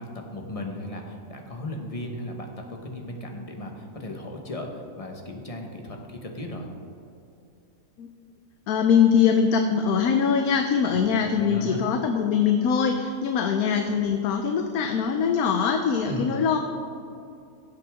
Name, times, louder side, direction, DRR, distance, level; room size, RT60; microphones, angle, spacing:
voice 1, 0.0-6.7 10.8-11.0 11.3-11.8 16.0-16.3, left 1 dB, 25° left, 2 dB, 1.1 m, -36 dB
voice 2, 8.7-16.6, left 6 dB, 80° left, 5 dB, 1.2 m, -22 dB
16.5 x 7.9 x 3.6 m, 2.6 s
omnidirectional pair, 1.6 m